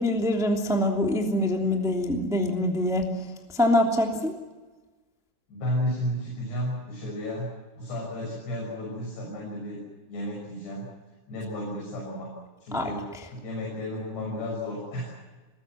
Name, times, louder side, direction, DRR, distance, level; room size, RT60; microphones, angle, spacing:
voice 1, 0.0-3.1 3.5-4.3 12.7-12.9, left 1 dB, ahead, 1 dB, 1.4 m, -24 dB
voice 2, 5.5-10.9 11.3-12.3 12.6-15.1, left 1 dB, 60° left, -3 dB, 8.5 m, -33 dB
26.5 x 21.5 x 7.8 m, 1.3 s
omnidirectional pair, 5.4 m